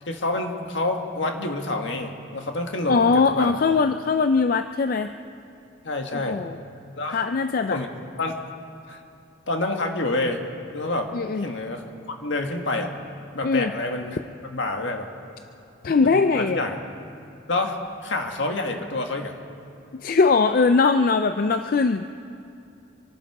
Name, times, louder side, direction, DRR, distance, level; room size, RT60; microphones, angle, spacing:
voice 1, 0.0-3.5 5.8-6.4 7.0-7.2 7.7-7.9 8.2-8.4 8.9-9.0 9.5-10.4 10.7-11.1 11.4-11.9 12.2-12.9 13.3-14.2 14.4-15.1 16.0-16.8 17.5-19.3, left 2 dB, 70° left, 3 dB, 1.7 m, -27 dB
voice 2, 2.9-5.1 6.1-6.6 7.1-7.8 11.1-11.5 13.4-13.7 15.8-16.6 19.9-22.0, left 4 dB, 45° left, 9 dB, 0.4 m, -21 dB
26.0 x 11.5 x 4.8 m, 2.5 s
head